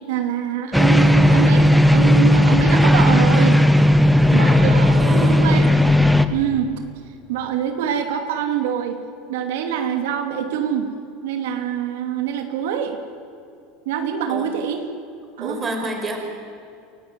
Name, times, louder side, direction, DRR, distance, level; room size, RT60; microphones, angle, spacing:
voice 1, 0.1-3.6 4.3-5.8 6.3-6.7 7.3-9.0 9.3-10.9 11.2-13.0 13.9-14.9 15.4-15.7, right 8 dB, 85° right, 5 dB, 2.8 m, -25 dB
sound 1, 0.7-6.3, left 1 dB, ahead, 1.1 m, -14 dB
voice 2, 4.9-5.3 14.3-14.4 15.4-16.2, right 2 dB, 20° right, 3 dB, 4.9 m, -28 dB
29.0 x 17.5 x 9.5 m, 2.6 s
supercardioid pair, 155°, 0 cm